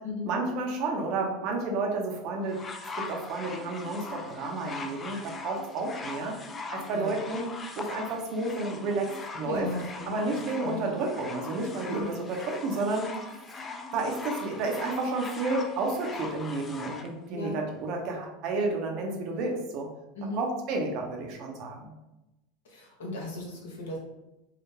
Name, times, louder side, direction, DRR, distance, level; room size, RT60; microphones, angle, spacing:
voice 1, 0.2-2.6 3.0-6.4 6.7-7.5 7.8-9.7 10.1-13.1 13.9-19.9 20.3-21.9, right 3 dB, 50° right, 1 dB, 0.6 m, -31 dB
sound 1, 2.5-17.1 17.9-18.0, left 4 dB, 25° left, 0.3 m, -41 dB
voice 2, 9.4-10.9 11.9-12.1 17.3-17.6 20.1-20.4 22.6-24.0, left 1 dB, 75° left, -1 dB, 0.7 m, -36 dB
2.4 x 2.1 x 3.1 m, 0.97 s
hypercardioid pair, 85°, 0 cm